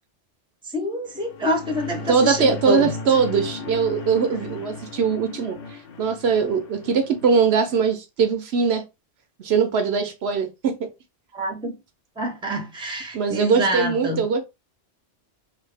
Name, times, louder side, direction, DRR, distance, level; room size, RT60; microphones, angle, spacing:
voice 1, 0.7-2.9 11.3-11.7 12.2-14.2, equal, 5° right, 0.7 m, -26 dB
sound 1, 1.2-7.8, left 4 dB, 60° left, 0.8 m, -36 dB
voice 2, 2.0-8.8 9.4-10.9 13.1-14.4, right 5 dB, 65° right, 0.8 m, -21 dB
3.3 x 2.6 x 3.3 m
omnidirectional pair, 1.2 m